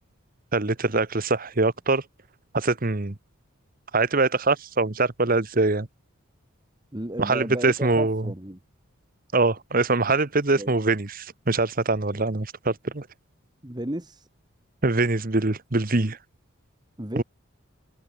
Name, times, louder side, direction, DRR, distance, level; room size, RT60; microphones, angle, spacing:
voice 1, 0.5-2.0 2.5-3.1 3.9-5.9 7.2-8.3 9.3-13.1 14.8-16.2 17.2-17.3, right 3 dB, 40° right, 1.2 m, -23 dB
voice 2, 6.9-8.6 10.6-10.7 13.6-14.3 17.0-17.2, right 1 dB, 20° right, 1.5 m, -33 dB
head